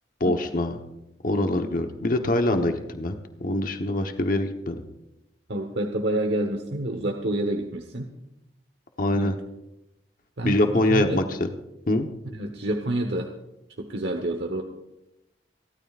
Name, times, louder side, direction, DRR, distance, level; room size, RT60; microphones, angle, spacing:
voice 1, 0.2-0.8 1.2-4.8 9.0-9.4 10.4-11.5 11.9-12.1, left 1 dB, 50° left, 5 dB, 1.1 m, -24 dB
voice 2, 5.5-8.1 9.1-9.3 10.4-10.6 10.9-11.2 12.3-13.3 13.8-14.6, right 1 dB, 65° right, 4 dB, 1.2 m, -28 dB
30.0 x 12.5 x 2.5 m, 0.91 s
head